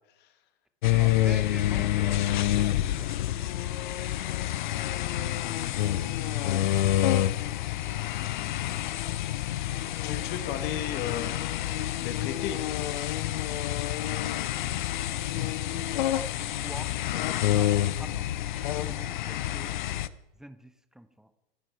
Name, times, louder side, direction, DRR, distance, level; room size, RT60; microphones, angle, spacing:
sound 1, 0.8-20.1, left 13 dB, 50° left, 0.7 m, -28 dB
voice 1, 0.9-3.1 15.3-16.9 17.6-19.8 20.3-21.3, right 1 dB, ahead, 12 dB, 0.7 m, -46 dB
voice 2, 5.2-6.8 10.0-11.4 12.0-12.6, left 9 dB, 35° left, 9 dB, 1.9 m, -37 dB
25.0 x 9.0 x 4.6 m, 1.0 s
figure-of-eight pair, 95°, 31 cm